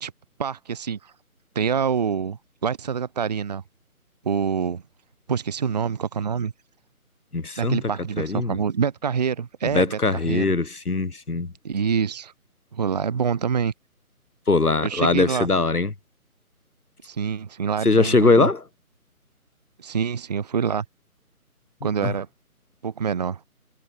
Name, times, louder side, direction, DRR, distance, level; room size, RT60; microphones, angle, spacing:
voice 1, 0.4-1.1 1.5-3.6 4.2-4.8 5.3-6.5 7.6-9.9 10.2-10.5 11.6-12.3 12.7-13.7 14.8-15.5 17.0-18.5 19.8-20.8 21.8-22.3 22.8-23.4, right 7 dB, 30° right, 1.4 m, -26 dB
voice 2, 7.3-7.9 8.2-8.6 9.7-11.5 14.5-15.9 17.8-18.6 22.0-22.1, left 3 dB, 90° left, 2.9 m, -21 dB
figure-of-eight pair, 160°, 44 cm